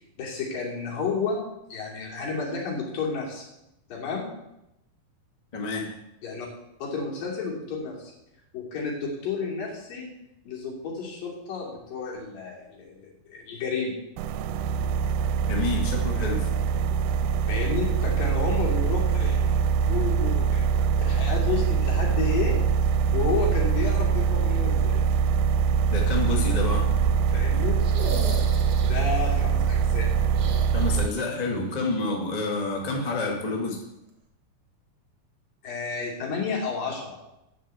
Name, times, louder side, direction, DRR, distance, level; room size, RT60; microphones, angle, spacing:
voice 1, 0.2-1.4 1.7-3.4 3.9-4.3 6.2-6.5 6.8-8.1 8.5-10.1 10.4-13.9 17.5-19.5 19.9-20.7 21.0-22.6 23.1-25.0 27.3-27.8 28.8-30.1 35.6-37.2, left 4 dB, 70° left, -3 dB, 4.5 m, -31 dB
voice 2, 5.5-5.9 15.5-16.5 25.9-26.9 30.7-33.8, left 3 dB, 30° left, 0 dB, 0.7 m, -28 dB
sound 1, 14.2-31.1, right 6 dB, 85° right, 2.3 m, -23 dB
sound 2, 27.8-29.2 30.3-31.5 31.8-31.9 33.5-33.6, right 4 dB, 45° right, 1.4 m, -37 dB
10.0 x 6.6 x 7.9 m, 0.88 s
omnidirectional pair, 4.1 m